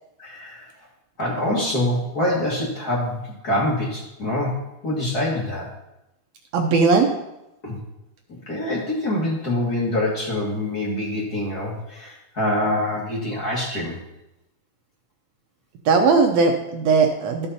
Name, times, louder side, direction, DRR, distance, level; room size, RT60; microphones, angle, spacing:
voice 1, 0.2-0.7 1.2-4.6 4.8-5.7 7.6-7.8 8.3-14.0, left 1 dB, 35° left, -5 dB, 2.0 m, -25 dB
voice 2, 6.5-7.1 15.9-17.5, right 4 dB, 70° right, 3 dB, 1.8 m, -18 dB
13.0 x 5.5 x 4.1 m, 0.90 s
omnidirectional pair, 3.5 m